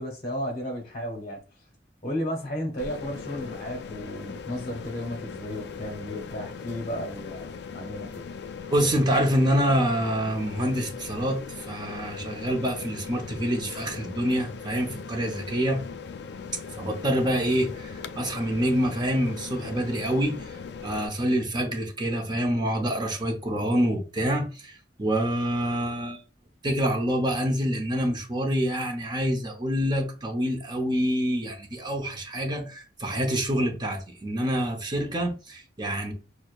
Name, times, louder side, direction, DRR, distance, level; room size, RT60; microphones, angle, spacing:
voice 1, 0.0-1.4 2.0-8.2, equal, 40° left, 0.8 m, -34 dB
sound 1, 2.8-21.1, left 5 dB, 65° left, 0.4 m, -39 dB
voice 2, 8.7-15.8 16.8-20.4 20.8-26.2 26.6-36.1, equal, 25° right, 0.8 m, -26 dB
6.2 x 2.1 x 2.4 m
head